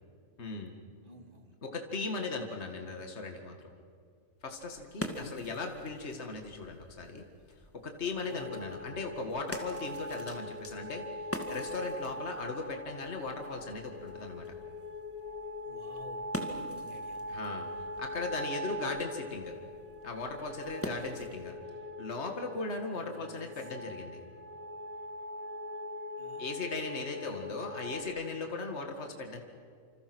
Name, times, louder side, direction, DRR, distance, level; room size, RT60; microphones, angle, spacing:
voice 1, 0.4-0.8 1.6-3.6 4.4-7.2 7.7-11.0 11.5-14.5 17.3-17.7 18.0-19.6 20.0-21.5 22.0-24.2 26.4-29.4, left 3 dB, 55° left, 4 dB, 2.2 m, -38 dB
voice 2, 1.0-1.6 5.1-5.6 8.2-8.8 15.6-17.2 20.8-21.2 22.9-23.7 26.2-27.5, equal, 40° right, 5 dB, 2.3 m, -53 dB
sound 1, 4.4-21.6, equal, 10° left, 2.2 m, -46 dB
sound 2, 8.3-28.0, left 1 dB, 25° left, 3.6 m, -42 dB
27.5 x 27.0 x 6.2 m, 2.3 s
omnidirectional pair, 1.4 m